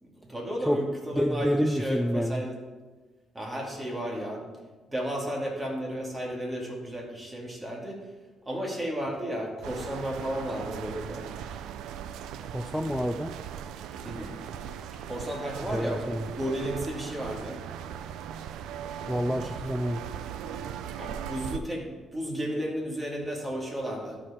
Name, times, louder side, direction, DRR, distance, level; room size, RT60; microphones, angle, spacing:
voice 1, 0.0-2.6 3.3-4.5 4.9-8.0 8.5-11.3 14.0-14.4 15.1-16.0 16.3-17.6 21.0-24.2, equal, 15° right, -2 dB, 2.3 m, -33 dB
voice 2, 1.1-2.4 12.5-13.3 15.7-16.3 19.1-20.0, equal, 5° left, 7 dB, 0.4 m, -28 dB
sound 1, 9.6-21.6, right 9 dB, 85° right, 0.4 m, -39 dB
12.5 x 4.8 x 4.3 m, 1.2 s
cardioid pair, 90°, 0 cm